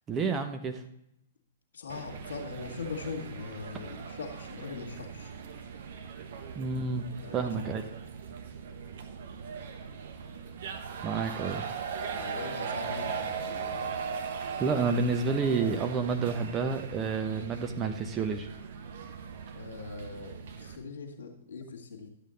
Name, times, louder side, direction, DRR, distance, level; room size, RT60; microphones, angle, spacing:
voice 1, 0.1-0.8 6.5-7.0 7.3-7.9 11.0-11.7 14.6-18.5, right 4 dB, 20° right, 5 dB, 0.8 m, -29 dB
voice 2, 1.7-5.3 7.2-7.8 12.1-14.0 19.5-22.1, left 4 dB, 60° left, 1 dB, 1.9 m, -41 dB
sound 1, 1.9-20.8, right 6 dB, 50° right, 1.1 m, -39 dB
12.0 x 8.4 x 3.9 m, 0.80 s
figure-of-eight pair, 110°, 0 cm